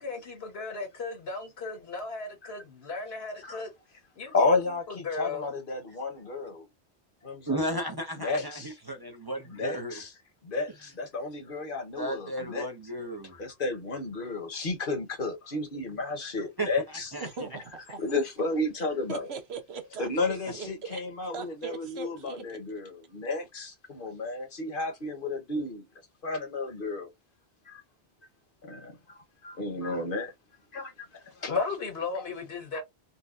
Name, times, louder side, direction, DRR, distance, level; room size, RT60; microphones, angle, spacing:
voice 1, 0.0-3.7 4.2-4.6 5.0-5.5 31.5-32.8, left 4 dB, 80° left, 1.5 m, -35 dB
voice 2, 4.3-6.7 7.2-7.8 8.2-8.7 9.5-10.1 10.4-12.7 13.2-17.1 18.0-19.3 20.0-25.8 26.2-27.1 27.6-27.8 28.6-30.3 30.7-31.5 32.1-32.2 32.7-32.8, left 3 dB, 60° left, 1.2 m, -32 dB
voice 3, 7.5-10.0 12.0-13.4 16.6-16.7 17.1-17.3, right 1 dB, 25° right, 0.6 m, -34 dB
voice 4, 17.2-18.2 19.1-21.0 21.3-22.6, right 5 dB, 90° right, 1.1 m, -40 dB
4.1 x 2.2 x 2.4 m
omnidirectional pair, 1.0 m